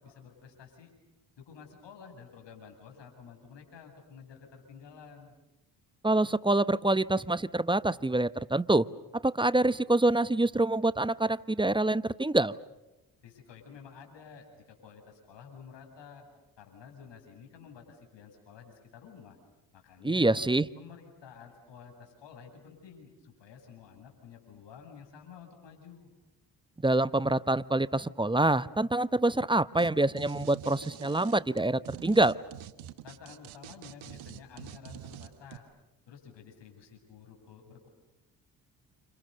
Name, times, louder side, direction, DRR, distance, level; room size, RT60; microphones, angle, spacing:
voice 1, 0.0-0.9 1.4-5.3 13.2-16.2 16.6-19.4 19.7-20.4 20.8-26.1 33.0-35.7 36.1-37.9, left 6 dB, 60° left, 3 dB, 8.0 m, -51 dB
voice 2, 6.0-8.9 9.1-12.6 20.0-20.7 26.8-32.4, right 2 dB, 10° right, 17 dB, 0.9 m, -26 dB
sound 1, 29.8-29.9 30.2-35.6, right 12 dB, 75° right, 1.6 m, -46 dB
30.0 x 28.0 x 6.8 m, 0.99 s
hypercardioid pair, 50°, 48 cm